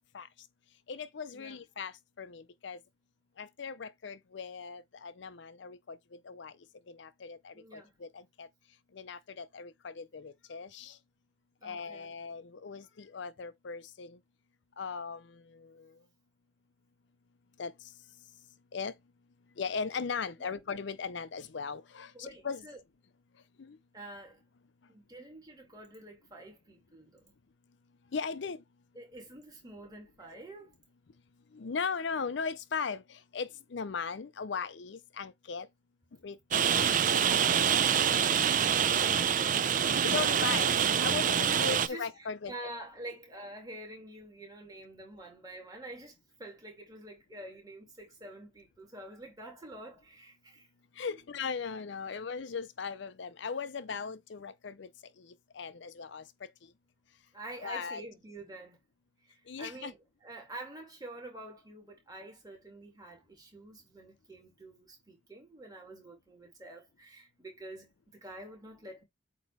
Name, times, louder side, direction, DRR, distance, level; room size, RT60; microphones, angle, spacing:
voice 1, 0.9-2.8 3.4-6.6 6.9-8.5 8.9-11.0 11.6-14.2 14.8-15.9 17.6-17.7 18.7-18.9 19.6-22.6 23.6-23.8 28.1-28.6 31.5-35.7 36.2-37.6 40.0-42.5 51.0-54.9 55.2-56.3 56.6-56.7 57.6-58.0 59.5-59.9, left 5 dB, 60° left, 0.5 m, -38 dB
voice 2, 7.5-7.9 11.6-12.1 20.4-20.5 22.1-22.8 23.9-24.4 24.9-27.3 28.9-30.7 39.0-39.6 41.2-41.4 41.7-50.7 51.1-51.2 52.1-52.2 57.3-58.8 59.3-69.0, right 1 dB, 20° right, 2.4 m, -47 dB
Rain, 36.5-41.9, right 8 dB, 40° right, 0.4 m, -26 dB
8.2 x 3.0 x 4.6 m
head